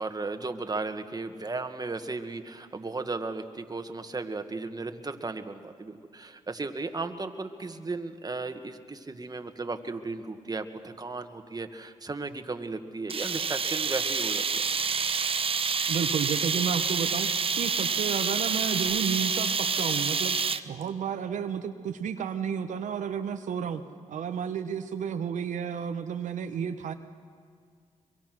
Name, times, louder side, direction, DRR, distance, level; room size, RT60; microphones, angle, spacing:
voice 1, 0.0-14.6, right 3 dB, 30° right, 7 dB, 1.7 m, -35 dB
sound 1, 13.1-20.8, right 5 dB, 45° right, 0.9 m, -28 dB
voice 2, 15.9-20.4 20.6-23.8 24.1-26.9, right 7 dB, 75° right, 7 dB, 0.9 m, -32 dB
23.5 x 22.5 x 6.2 m, 2.1 s
cardioid pair, 55°, 13 cm